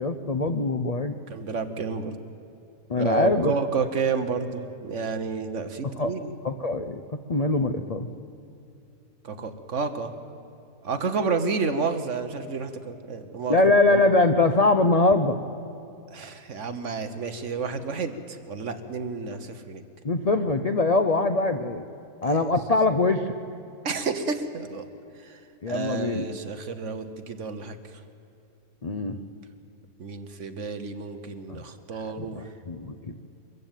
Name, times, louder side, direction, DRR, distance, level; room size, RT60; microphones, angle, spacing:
voice 1, 0.0-1.1 2.9-3.5 6.0-6.1 6.4-7.0 7.3-8.1 13.5-15.4 20.0-21.9 22.2-23.3 25.6-26.2 28.8-29.2 31.5-31.6 32.2-33.1, left 2 dB, 40° left, 8 dB, 0.5 m, -23 dB
voice 2, 1.3-2.1 2.9-6.4 9.2-10.1 10.8-13.6 16.1-19.8 22.3-22.5 23.8-24.8 25.2-25.4 25.7-28.0 30.0-32.5, right 4 dB, 55° right, 9 dB, 1.4 m, -30 dB
23.5 x 14.5 x 9.1 m, 2.7 s
omnidirectional pair, 1.6 m